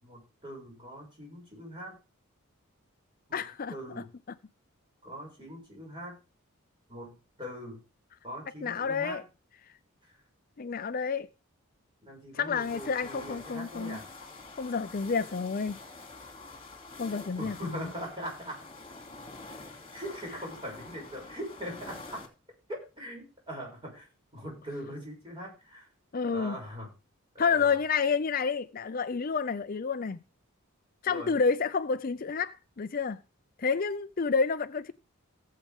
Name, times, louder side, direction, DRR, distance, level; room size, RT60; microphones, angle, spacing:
voice 1, 0.0-2.0 3.3-3.4 3.7-4.1 5.0-6.2 6.9-7.8 8.2-9.2 12.0-14.1 17.4-18.7 19.9-22.2 22.7-24.1 24.3-25.9 26.2-26.9 27.3-27.8 31.1-31.3, equal, 25° right, 6.9 m, -41 dB
voice 2, 3.3-3.8 8.6-9.2 10.6-11.3 12.3-14.0 14.6-15.8 17.0-17.9 26.1-26.6 27.4-30.2 31.0-33.2 33.6-34.9, left 5 dB, 40° left, 0.5 m, -29 dB
sound 1, 12.5-22.3, left 3 dB, 25° left, 2.7 m, -47 dB
17.5 x 7.5 x 3.6 m
head